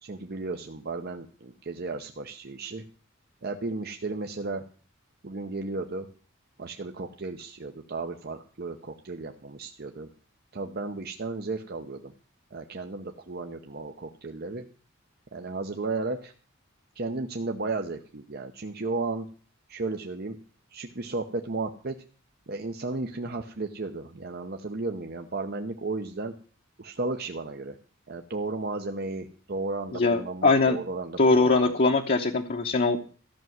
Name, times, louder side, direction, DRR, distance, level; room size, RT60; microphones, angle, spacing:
voice 1, 0.0-2.8 3.4-4.6 5.2-6.1 6.6-10.1 10.5-12.1 12.5-14.6 15.3-16.3 16.9-19.3 19.7-20.4 20.7-22.0 22.5-26.3 26.8-27.8 28.1-31.7, right 3 dB, 50° right, 4 dB, 0.9 m, -34 dB
voice 2, 29.9-30.8 31.2-33.0, left 3 dB, 50° left, 2 dB, 1.0 m, -22 dB
14.0 x 6.2 x 9.3 m, 0.41 s
head